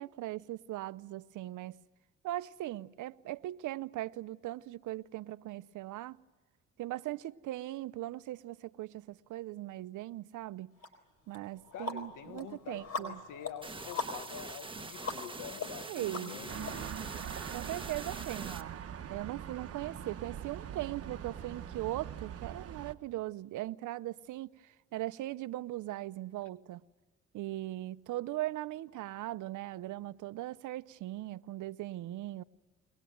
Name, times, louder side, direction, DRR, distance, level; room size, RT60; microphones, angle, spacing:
voice 1, 0.0-1.8 2.2-6.2 6.8-10.7 11.3-13.2 15.9-16.3 17.5-18.8 19.1-26.8 27.3-32.4, right 15 dB, 80° right, 0.7 m, -39 dB
sound 1, 10.8-10.9 11.3-16.7, left 4 dB, 55° left, 4.4 m, -41 dB
voice 2, 11.7-16.8, left 10 dB, 90° left, 1.3 m, -47 dB
sound 2, 13.6-18.6, right 3 dB, 15° right, 1.4 m, -44 dB
sound 3, 16.5-22.9, right 9 dB, 50° right, 1.3 m, -42 dB
23.0 x 20.5 x 9.3 m
cardioid pair, 90°, 30 cm